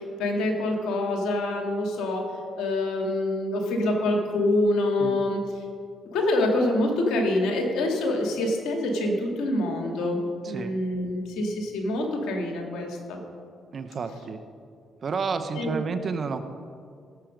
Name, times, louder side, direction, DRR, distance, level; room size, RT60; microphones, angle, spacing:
voice 1, 0.0-2.3 2.6-5.4 6.1-10.2 10.5-13.2 15.5-15.8, left 1 dB, 80° left, 1 dB, 2.1 m, -26 dB
voice 2, 10.4-10.8 13.7-14.4 15.0-16.4, right 5 dB, 55° right, 9 dB, 1.0 m, -31 dB
17.5 x 7.4 x 5.2 m, 2.3 s
supercardioid pair, 60°, 0 cm